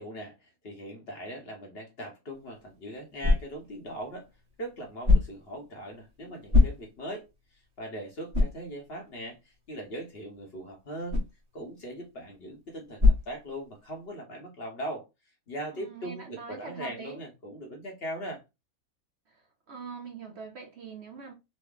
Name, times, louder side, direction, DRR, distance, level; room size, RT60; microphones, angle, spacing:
voice 1, 0.0-4.3 4.6-11.2 11.5-15.1 15.5-18.4, right 1 dB, 50° left, 0.9 m, -40 dB
sound 1, 2.3-14.1, left 3 dB, 30° right, 1.1 m, -29 dB
voice 2, 15.7-17.2 19.3-21.3, right 5 dB, 60° right, 0.8 m, -43 dB
3.1 x 2.1 x 3.5 m
omnidirectional pair, 1.5 m